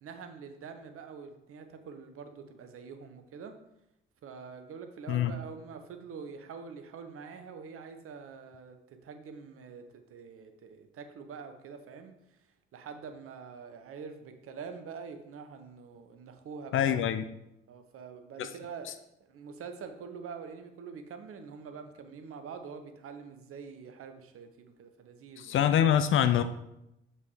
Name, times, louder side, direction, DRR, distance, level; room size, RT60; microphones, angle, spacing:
voice 1, 0.0-3.6 4.2-12.1 12.7-17.0 17.7-18.9 19.3-25.6, right 5 dB, 45° right, 7 dB, 0.9 m, -45 dB
voice 2, 16.7-17.2 18.4-18.5 25.4-26.4, left 10 dB, 40° left, 10 dB, 0.5 m, -25 dB
7.2 x 5.6 x 3.1 m, 0.85 s
figure-of-eight pair, 45°, 32 cm